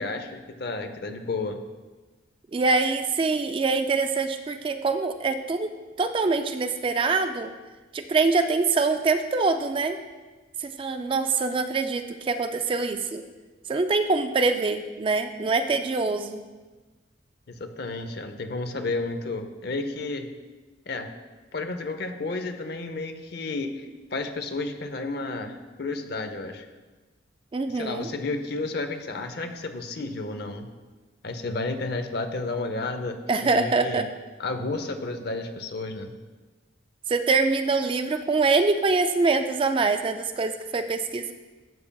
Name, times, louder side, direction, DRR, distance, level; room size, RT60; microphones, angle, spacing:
voice 1, 0.0-1.6 17.5-20.3 20.9-21.1 21.5-26.7 27.7-30.7 31.2-33.2 33.4-34.0 34.4-36.1, left 3 dB, 55° left, 7 dB, 0.7 m, -32 dB
voice 2, 2.5-7.5 7.9-10.0 10.6-13.2 13.7-16.4 27.5-28.1 33.3-34.1 37.1-41.3, right 3 dB, 30° right, 8 dB, 0.3 m, -24 dB
12.0 x 7.1 x 2.3 m, 1.3 s
head